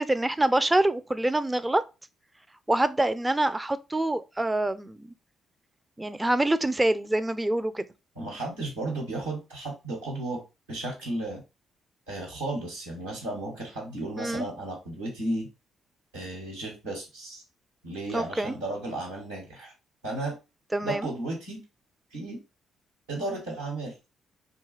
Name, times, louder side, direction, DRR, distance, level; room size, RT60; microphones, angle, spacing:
voice 1, 0.0-1.8 2.7-5.1 6.0-7.8 14.2-14.5 18.1-18.6 20.7-21.1, right 1 dB, 15° right, 0.3 m, -25 dB
voice 2, 8.1-10.4 10.7-11.4 12.1-15.5 16.1-17.4 17.8-19.7 20.0-20.4 20.8-21.6 22.1-22.4 23.1-23.9, right 2 dB, 90° right, 1.2 m, -34 dB
2.7 x 2.3 x 3.1 m
hypercardioid pair, 45°, 0 cm